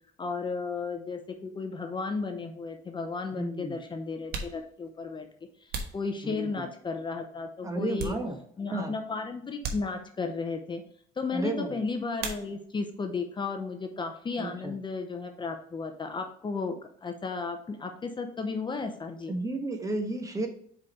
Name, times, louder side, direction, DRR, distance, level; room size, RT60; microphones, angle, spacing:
voice 1, 0.2-5.3 5.9-8.2 8.6-10.8 11.2-19.3, left 4 dB, 30° left, 5 dB, 0.7 m, -34 dB
voice 2, 3.3-3.8 6.2-6.7 7.6-8.4 8.7-8.9 11.3-11.8 14.4-14.8 19.3-20.5, right 2 dB, 20° right, 4 dB, 1.2 m, -33 dB
sound 1, 3.5-3.6 4.1-6.8 7.3-8.7 9.0-9.1 9.6-10.4 12.1-12.9 13.2-13.9 14.2-16.3, right 4 dB, 70° right, 1.3 m, -41 dB
4.9 x 4.9 x 4.2 m, 0.63 s
cardioid pair, 110°, 17 cm